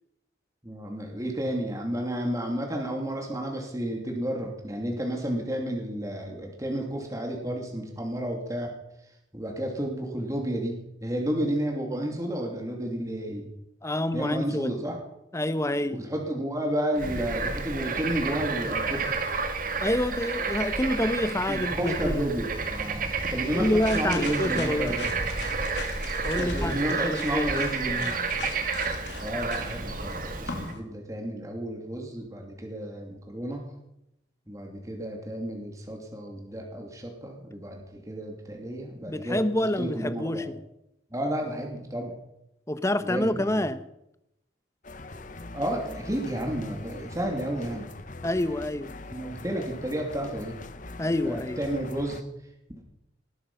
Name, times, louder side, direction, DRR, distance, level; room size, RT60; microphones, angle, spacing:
voice 1, 0.6-8.7 9.3-13.5 14.1-15.0 15.9-19.1 21.5-23.0 23.3-25.1 26.4-28.5 29.2-33.6 34.5-39.4 39.8-40.4 41.1-42.1 43.0-43.6 45.5-47.9 49.1-50.6 51.2-52.2 52.7-52.8, right 1 dB, 20° right, 2.9 m, -31 dB
voice 2, 13.8-14.8 15.3-16.1 19.8-22.2 23.5-25.0 26.2-27.7 39.0-40.6 42.7-43.8 48.2-48.9 51.0-51.6, left 1 dB, 15° left, 0.9 m, -27 dB
Bird / Frog, 17.0-30.7, right 4 dB, 45° right, 2.0 m, -30 dB
sound 1, 23.2-30.8, left 4 dB, 70° left, 3.0 m, -42 dB
sound 2, 44.8-52.2, left 2 dB, 45° left, 1.1 m, -42 dB
19.0 x 13.0 x 5.6 m
head